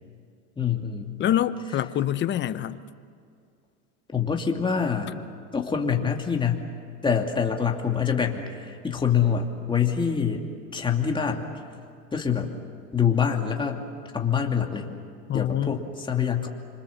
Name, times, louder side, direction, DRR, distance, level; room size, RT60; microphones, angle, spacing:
voice 1, 0.6-1.2 4.1-5.1 5.5-6.7 7.0-11.5 12.1-12.5 12.9-13.8 14.1-14.9 15.3-16.5, left 7 dB, 15° left, 2 dB, 2.7 m, -25 dB
voice 2, 1.2-2.8 15.3-15.8, left 11 dB, 30° left, 12 dB, 1.0 m, -25 dB
27.5 x 25.5 x 7.3 m, 2.4 s
supercardioid pair, 130°, 35 cm